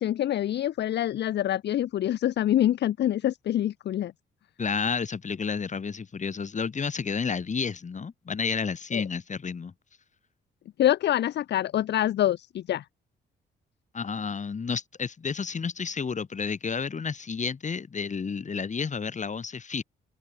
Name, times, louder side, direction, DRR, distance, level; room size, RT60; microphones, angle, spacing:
voice 1, 0.0-4.1 8.9-9.0 10.8-12.8, left 12 dB, 60° left, 0.6 m, -25 dB
voice 2, 4.6-9.7 13.9-19.8, left 5 dB, 35° left, 4.8 m, -31 dB
open air
cardioid pair, 90°, 20 cm